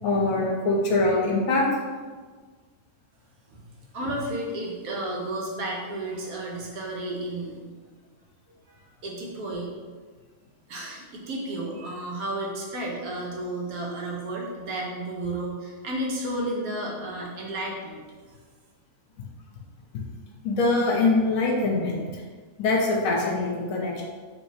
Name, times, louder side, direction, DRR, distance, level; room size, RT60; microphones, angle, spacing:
voice 1, 0.0-1.6 20.4-22.2 22.6-24.0, left 2 dB, 65° left, -2 dB, 1.1 m, -23 dB
voice 2, 3.9-7.6 9.0-9.7 10.7-18.0, right 1 dB, 70° right, -2 dB, 1.2 m, -32 dB
4.7 x 3.0 x 2.7 m, 1.5 s
omnidirectional pair, 1.6 m